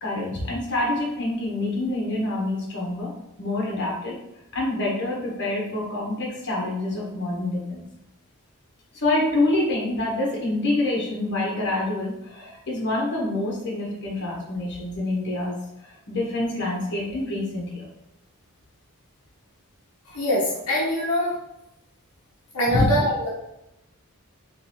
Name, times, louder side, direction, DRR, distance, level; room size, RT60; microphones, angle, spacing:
voice 1, 0.0-3.1 3.4-4.2 4.5-7.8 8.9-17.9 22.7-22.8, left 2 dB, 55° left, -3 dB, 1.2 m, -26 dB
voice 2, 20.1-21.4 22.5-23.3, equal, 75° left, -5 dB, 0.9 m, -23 dB
3.9 x 3.2 x 3.1 m, 0.88 s
head